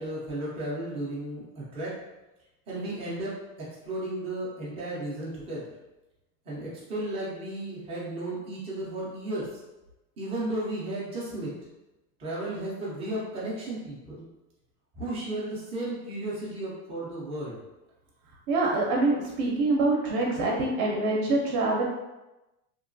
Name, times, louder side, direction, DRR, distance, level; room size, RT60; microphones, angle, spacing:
voice 1, 0.0-2.0 2.7-3.3 3.8-5.7 6.4-9.5 10.2-11.6 12.2-14.3 14.9-17.6, right 1 dB, 15° right, -6 dB, 0.3 m, -34 dB
voice 2, 18.5-21.8, right 2 dB, 60° right, -2 dB, 0.6 m, -25 dB
2.9 x 2.2 x 2.5 m, 1.0 s
supercardioid pair, 140°, 49 cm